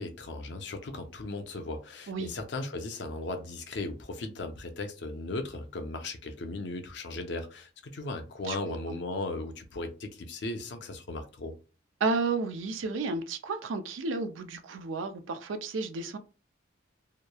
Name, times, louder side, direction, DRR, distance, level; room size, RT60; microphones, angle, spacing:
voice 1, 0.0-11.5, left 2 dB, 60° left, 0.5 m, -37 dB
voice 2, 12.0-16.2, right 3 dB, 80° right, 0.4 m, -32 dB
2.9 x 2.0 x 2.2 m
head